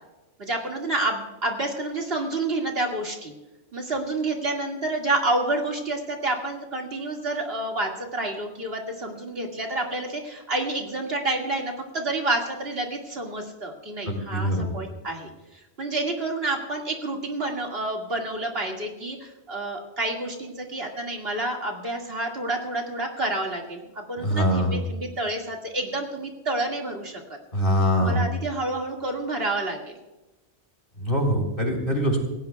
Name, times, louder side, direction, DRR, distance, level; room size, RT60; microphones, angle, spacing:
voice 1, 0.4-3.3 3.7-15.3 15.8-27.4 28.0-29.9, right 2 dB, 65° right, 1 dB, 2.4 m, -29 dB
voice 2, 14.1-14.7 24.2-24.8 27.5-28.3 31.0-32.2, equal, 55° left, 1 dB, 3.8 m, -23 dB
28.0 x 16.0 x 2.3 m, 1.1 s
omnidirectional pair, 1.1 m